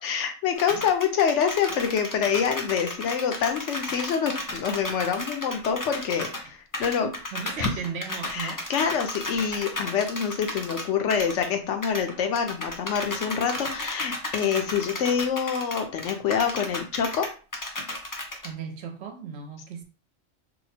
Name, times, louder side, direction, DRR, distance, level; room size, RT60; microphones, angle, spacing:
voice 1, 0.0-7.1 7.6-7.7 8.3-17.3, left 7 dB, 75° left, 0.9 m, -26 dB
sound 1, 0.6-6.4 6.7-11.5 11.8-18.5, left 1 dB, 35° left, 0.3 m, -34 dB
voice 2, 7.0-8.6 18.4-19.8, right 6 dB, 65° right, 0.9 m, -36 dB
2.8 x 2.2 x 4.1 m
omnidirectional pair, 1.2 m